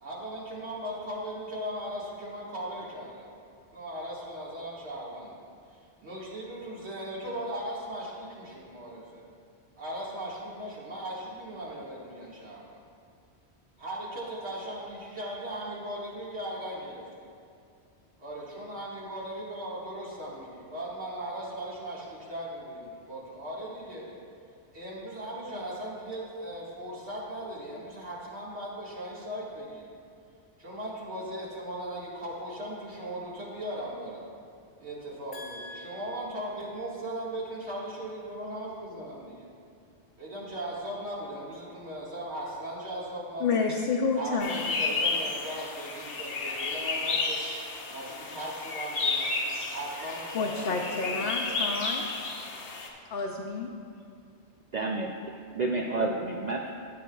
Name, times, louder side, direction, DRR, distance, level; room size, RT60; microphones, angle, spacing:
voice 1, 0.0-3.3 3.7-5.4 5.7-9.2 9.8-12.8 13.8-17.3 18.2-24.1 24.7-29.8 30.6-34.2 34.8-39.5 40.2-43.6 44.1-47.5 47.9-49.3 49.7-51.7, right 1 dB, 70° right, -6 dB, 2.1 m, -38 dB
voice 2, 35.3-36.3 43.4-44.6 50.3-52.0 53.1-53.7, left 4 dB, 65° left, 1 dB, 0.8 m, -30 dB
sound 1, 44.4-52.9, left 3 dB, 85° left, 1.2 m, -32 dB
voice 3, 54.7-56.7, right 2 dB, 55° right, 0 dB, 0.5 m, -30 dB
13.5 x 8.0 x 2.3 m, 2.4 s
omnidirectional pair, 1.1 m